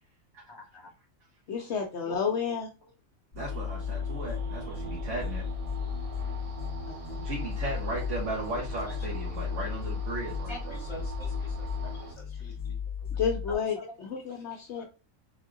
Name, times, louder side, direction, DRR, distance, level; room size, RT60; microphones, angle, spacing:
voice 1, 0.5-0.9 2.1-2.2 10.5-11.9 12.2-12.8 13.5-13.9 14.7-14.8, left 1 dB, 20° left, 1.3 m, -45 dB
voice 2, 1.5-2.7 6.9-7.2 13.2-14.8, left 6 dB, 60° left, 0.9 m, -31 dB
sound 1, 3.3-13.5, left 8 dB, 40° left, 1.1 m, -35 dB
voice 3, 3.3-5.4 7.2-10.8, right 2 dB, 60° right, 1.5 m, -36 dB
sound 2, 3.4-12.2, right 3 dB, 30° right, 0.8 m, -40 dB
3.6 x 3.4 x 3.7 m
omnidirectional pair, 1.4 m